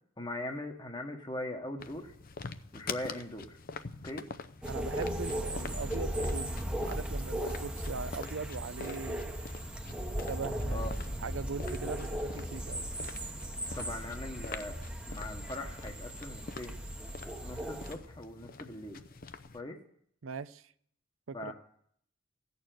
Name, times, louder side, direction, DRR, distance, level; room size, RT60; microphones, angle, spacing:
voice 1, 0.2-2.1 2.7-3.6 4.0-4.2 10.7-10.9 13.8-14.8 15.1-16.8 17.4-19.0 19.5-19.8 21.3-21.5, left 1 dB, 25° left, 1.2 m, -40 dB
sound 1, 1.8-19.6, left 4 dB, 45° left, 0.6 m, -47 dB
sound 2, 4.6-17.9, equal, 5° right, 0.9 m, -37 dB
voice 2, 4.7-9.4 10.3-10.9 11.2-12.9 20.2-20.6 21.3-21.5, right 4 dB, 90° right, 0.6 m, -40 dB
16.0 x 6.8 x 9.1 m
head